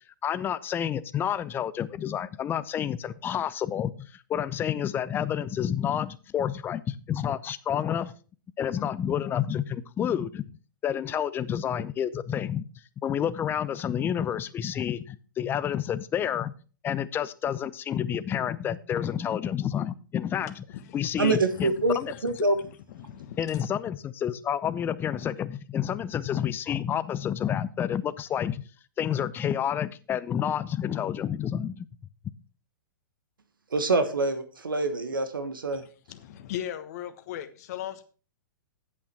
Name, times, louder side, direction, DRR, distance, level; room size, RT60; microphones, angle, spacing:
voice 1, 0.2-8.1 8.6-10.4 10.8-12.7 13.0-16.5 16.8-20.6 20.9-22.1 23.4-28.6 29.0-31.9, left 9 dB, 20° left, 16 dB, 0.6 m, -29 dB
voice 2, 20.4-21.3 21.5-22.2 22.5-23.7 36.1-38.0, left 11 dB, 50° left, 10 dB, 1.2 m, -39 dB
voice 3, 21.2-22.5 33.7-35.8, right 2 dB, 90° right, 10 dB, 1.3 m, -26 dB
8.5 x 8.5 x 4.4 m, 0.37 s
hypercardioid pair, 120°, 11 cm